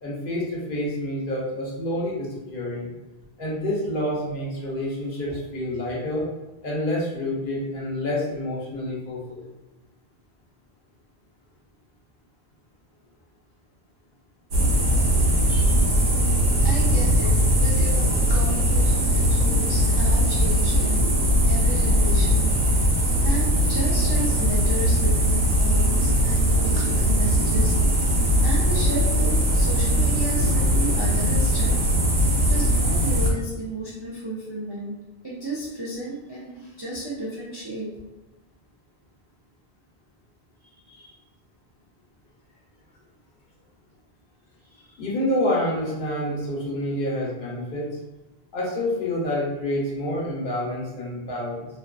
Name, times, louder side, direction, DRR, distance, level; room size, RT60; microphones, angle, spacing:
voice 1, 0.0-2.9 3.4-6.2 6.6-9.5 15.5-15.8 45.0-47.9 48.5-51.7, left 1 dB, 60° left, -5 dB, 0.9 m, -28 dB
sound 1, 14.5-33.3, equal, 80° right, 0.9 m, -20 dB
voice 2, 16.6-21.1 21.4-31.8 32.4-34.9 35.2-37.9 40.6-41.2 44.8-45.0, right 1 dB, 40° right, -8 dB, 0.3 m, -33 dB
2.5 x 2.3 x 2.2 m, 1.1 s
omnidirectional pair, 1.1 m